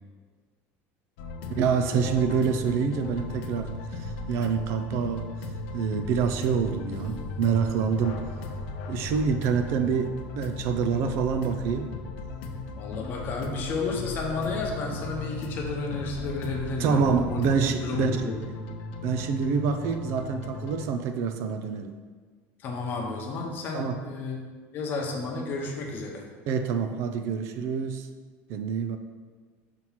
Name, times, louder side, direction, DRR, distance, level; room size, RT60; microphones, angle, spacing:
sound 1, 1.2-20.9, left 2 dB, 75° left, 0.7 m, -36 dB
voice 1, 1.6-5.3 5.7-8.2 8.9-11.9 16.8-18.1 19.0-21.9 23.7-24.0 26.5-28.1 28.5-29.0, right 6 dB, 50° right, 8 dB, 0.4 m, -26 dB
voice 2, 12.8-17.4 17.8-18.4 22.6-24.4 24.7-26.2, left 3 dB, 35° left, 0 dB, 0.9 m, -32 dB
6.0 x 3.0 x 5.6 m, 1.5 s
cardioid pair, 175°, 6 cm